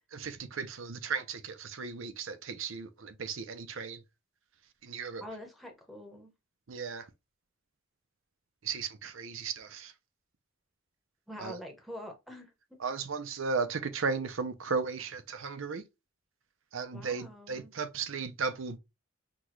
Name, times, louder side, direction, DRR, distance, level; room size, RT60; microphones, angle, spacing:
voice 1, 0.1-4.0 4.8-5.2 6.7-7.1 8.6-9.9 11.4-11.6 12.8-15.8 16.7-18.8, right 5 dB, 80° right, 0.7 m, -35 dB
voice 2, 5.2-6.3 11.3-12.8 16.9-17.7, left 1 dB, ahead, 1.0 m, -45 dB
6.0 x 2.3 x 3.1 m
head